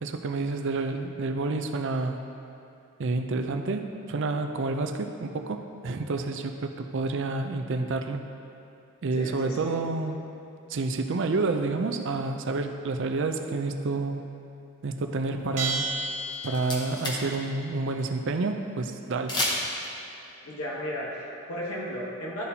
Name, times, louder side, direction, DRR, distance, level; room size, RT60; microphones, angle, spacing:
voice 1, 0.0-2.2 3.0-8.2 9.0-10.3 10.7-14.2 14.8-15.9 16.4-19.4, right 3 dB, 55° right, 6 dB, 0.4 m, -29 dB
voice 2, 9.1-9.8 20.4-22.4, equal, 80° left, -5 dB, 1.2 m, -35 dB
Bell, 15.6-17.1, right 3 dB, 35° right, 0.9 m, -32 dB
sound 1, 16.1-16.2 16.3-17.4 17.6-17.7 19.3-19.9, left 1 dB, 20° left, 0.9 m, -30 dB
12.5 x 4.2 x 2.8 m, 2.7 s
head